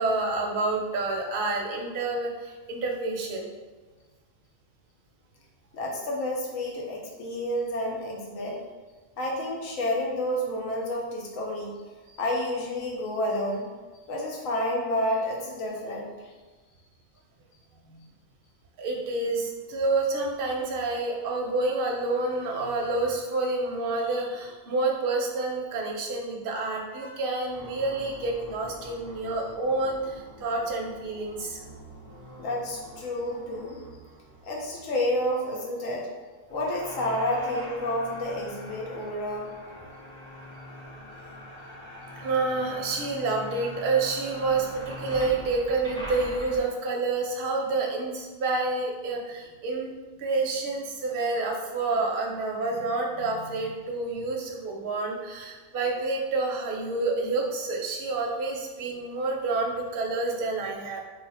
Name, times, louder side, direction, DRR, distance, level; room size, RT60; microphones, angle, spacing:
voice 1, 0.0-3.5 12.1-12.2 17.8-18.0 18.8-31.6 42.2-49.9 50.2-61.0, right 3 dB, 55° right, 0 dB, 0.6 m, -28 dB
voice 2, 5.7-8.6 9.2-11.8 12.2-13.7 14.1-16.3 32.4-33.8 34.4-36.1 36.5-39.5, left 1 dB, 80° left, -2 dB, 1.1 m, -30 dB
sound 1, 27.5-35.5 36.5-46.6, equal, 5° left, 0.8 m, -43 dB
2.5 x 2.4 x 4.0 m, 1.3 s
omnidirectional pair, 1.3 m